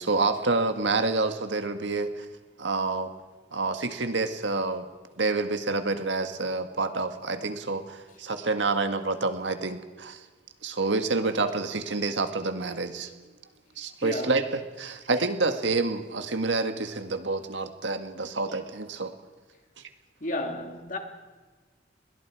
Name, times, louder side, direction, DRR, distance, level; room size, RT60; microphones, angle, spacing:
voice 1, 0.0-2.3 2.6-3.1 3.5-4.9 5.2-10.3 10.6-13.1 13.8-19.1, right 3 dB, 85° right, 1.7 m, -28 dB
voice 2, 14.0-14.4 20.2-21.0, left 1 dB, 45° left, 2.8 m, -32 dB
29.0 x 22.0 x 4.8 m
head